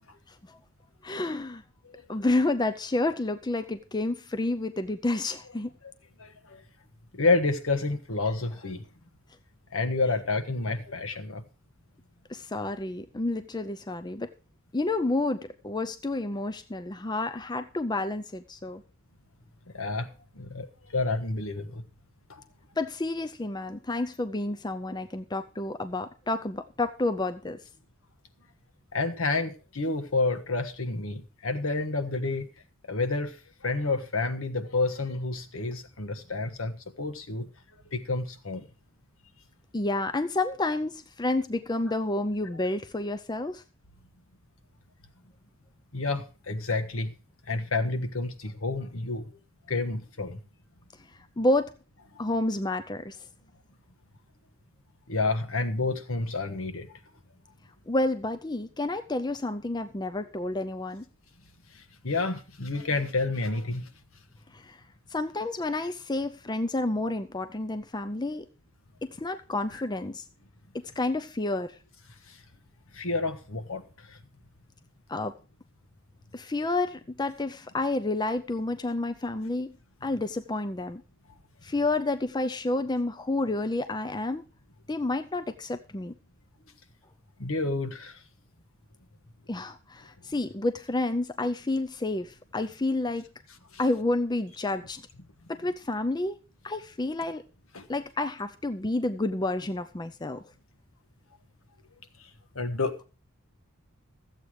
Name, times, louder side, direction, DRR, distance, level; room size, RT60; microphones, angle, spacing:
voice 1, 1.0-1.6 2.1-5.7 12.3-14.3 14.7-18.8 22.8-27.6 39.7-43.6 51.4-51.7 52.2-53.2 57.9-61.0 64.7-64.8 65.1-68.5 69.0-70.2 70.7-71.7 75.1-75.3 76.3-79.7 80.0-81.0 81.6-84.4 84.9-86.1 89.5-93.2 93.8-95.0 95.5-96.4 96.6-97.4 97.9-100.4, left 2 dB, 20° left, 0.5 m, -30 dB
voice 2, 1.8-2.2 5.8-5.9 6.2-6.6 7.1-8.9 9.7-11.4 19.7-20.1 20.3-21.8 22.3-22.4 28.9-32.5 32.9-37.5 37.8-38.6 45.9-47.2 47.5-49.3 49.7-50.4 52.1-52.2 55.1-56.9 61.7-63.9 69.7-69.8 72.3-72.4 72.9-74.2 87.4-88.2 93.7-93.8 97.7-97.9 102.2-102.3 102.5-103.0, left 3 dB, 70° left, 1.4 m, -29 dB
13.5 x 8.1 x 4.8 m
head